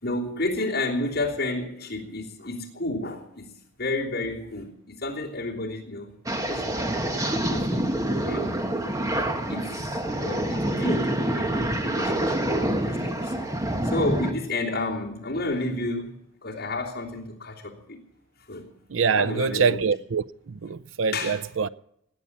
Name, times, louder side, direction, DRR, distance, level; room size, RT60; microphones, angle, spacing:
voice 1, 0.0-3.5 3.8-6.1 6.4-7.9 8.3-8.6 9.5-9.9 10.2-12.5 12.8-16.2 16.4-18.0 18.5-18.7 19.2-19.8 21.1-21.4, left 2 dB, 55° left, 3.1 m, -31 dB
sound 1, 6.3-14.3, right 1 dB, 15° right, 1.4 m, -26 dB
voice 2, 18.9-21.7, right 5 dB, 85° right, 0.6 m, -25 dB
19.0 x 8.4 x 7.3 m
head